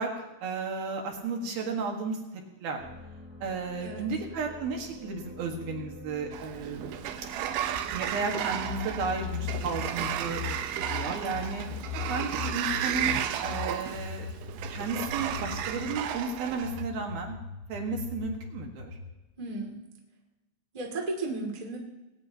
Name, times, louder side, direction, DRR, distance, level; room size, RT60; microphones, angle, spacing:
voice 1, 0.0-2.2 2.6-2.8 3.4-7.0 7.9-10.4 10.9-11.7 12.1-13.2 13.4-14.3 14.7-17.4 17.7-19.0, right 4 dB, 60° right, 2 dB, 3.0 m, -33 dB
sound 1, 2.8-13.0, equal, ahead, 5.1 m, -48 dB
Sliding door, 6.3-16.8, right 10 dB, 80° right, 3.2 m, -33 dB
sound 2, 8.6-15.9 16.6-19.1, left 6 dB, 80° left, 1.2 m, -38 dB
voice 2, 19.4-19.8 20.7-21.8, right 2 dB, 45° right, 0 dB, 0.5 m, -34 dB
21.0 x 18.0 x 2.9 m, 1.1 s
omnidirectional pair, 5.7 m